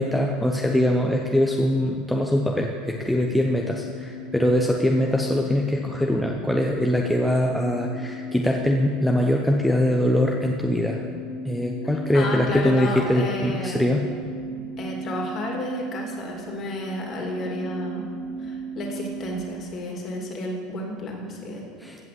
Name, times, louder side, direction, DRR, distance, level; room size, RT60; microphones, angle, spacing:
voice 1, 0.0-11.0 11.4-14.1 21.8-22.0, left 1 dB, ahead, 0 dB, 0.7 m, -22 dB
sound 1, 3.3-19.6, equal, 75° left, 1.6 m, -37 dB
voice 2, 11.8-13.9 14.8-18.0 18.4-21.7, left 1 dB, 35° left, 0 dB, 2.4 m, -32 dB
15.5 x 5.6 x 7.7 m, 2.1 s
supercardioid pair, 145°, 0 cm